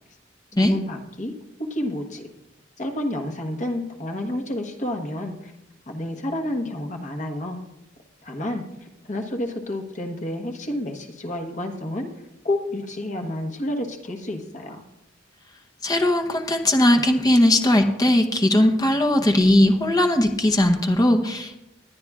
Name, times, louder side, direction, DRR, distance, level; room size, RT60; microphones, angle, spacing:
voice 1, 0.6-1.3 1.6-2.3 2.8-5.5 5.9-7.6 8.2-12.1 12.4-14.8, left 1 dB, 40° left, 3 dB, 1.3 m, -30 dB
voice 2, 15.8-21.6, left 1 dB, 20° left, 5 dB, 0.8 m, -19 dB
21.0 x 9.5 x 2.4 m, 0.90 s
head